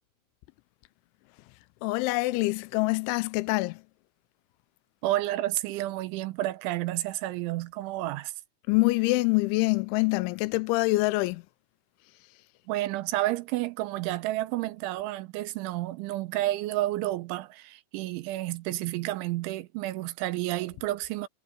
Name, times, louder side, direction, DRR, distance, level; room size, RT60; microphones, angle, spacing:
voice 1, 1.8-3.8 8.7-11.4, left 22 dB, 85° left, 2.9 m, -25 dB
voice 2, 5.0-8.3 12.7-21.3, right 16 dB, 80° right, 3.2 m, -30 dB
omnidirectional pair, 5.5 m